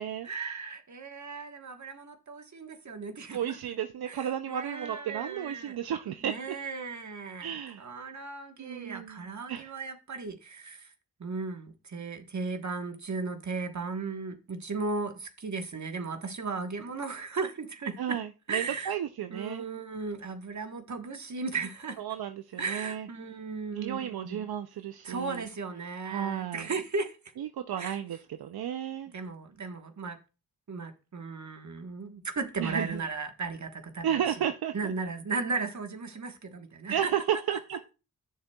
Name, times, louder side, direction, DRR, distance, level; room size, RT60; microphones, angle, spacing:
voice 1, 0.2-3.6 4.0-5.8 6.2-7.5 7.8-10.9 11.2-18.2 18.5-18.9 19.3-22.0 22.6-24.5 25.0-27.2 27.8-28.0 29.1-30.2 30.7-34.4 34.7-37.1, right 4 dB, 50° right, 1.3 m, -36 dB
voice 2, 3.3-6.4 7.4-7.9 8.6-9.7 18.0-19.6 22.0-23.1 23.7-25.4 26.1-26.7 27.4-29.1 32.6-33.0 34.0-34.9 36.9-37.8, right 9 dB, 75° right, 0.6 m, -33 dB
11.0 x 6.5 x 2.3 m
cardioid pair, 60°, 37 cm